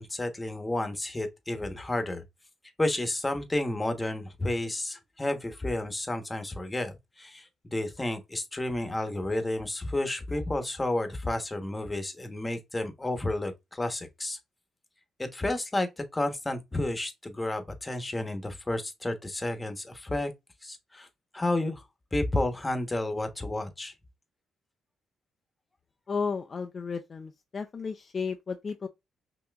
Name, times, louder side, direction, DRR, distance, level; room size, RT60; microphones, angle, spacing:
voice 1, 0.0-2.2 2.8-14.4 15.2-20.3 20.6-21.1 21.3-21.8 22.1-23.9, left 1 dB, 15° left, 1.0 m, -31 dB
voice 2, 26.1-28.9, left 5 dB, 40° left, 0.4 m, -33 dB
5.6 x 2.9 x 2.3 m
cardioid pair, 90°, 0 cm